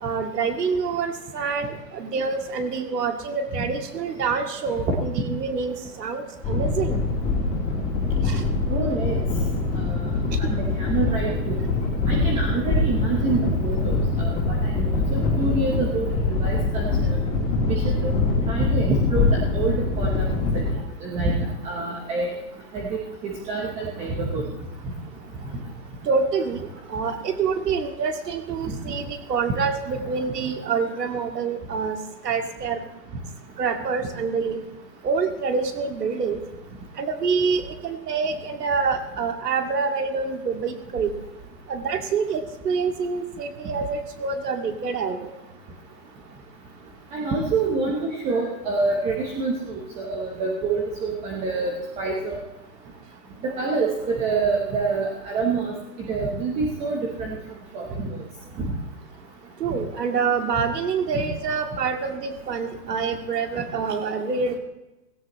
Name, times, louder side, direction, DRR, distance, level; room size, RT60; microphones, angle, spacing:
voice 1, 0.0-7.0 8.2-8.4 10.4-10.5 26.0-32.0 32.2-32.8 33.6-34.6 35.0-36.4 37.0-41.1 41.7-45.3 59.6-64.6, right 5 dB, 70° right, 4 dB, 2.4 m, -26 dB
sound 1, 6.4-20.7, left 3 dB, 10° left, 2.9 m, -24 dB
voice 2, 8.7-9.2 9.8-10.1 10.6-11.6 12.1-16.1 16.4-17.2 17.7-18.1 18.5-20.3 20.5-20.6 21.0-21.3 21.6-22.3 22.7-22.9 23.2-24.4 28.7-28.9 47.1-51.7 52.0-52.4 53.4-55.7 56.1-57.3 57.7-58.1 58.6-58.7 61.1-61.2, right 3 dB, 15° right, -1 dB, 1.0 m, -26 dB
17.5 x 16.5 x 3.1 m, 1.0 s
hypercardioid pair, 160°, 49 cm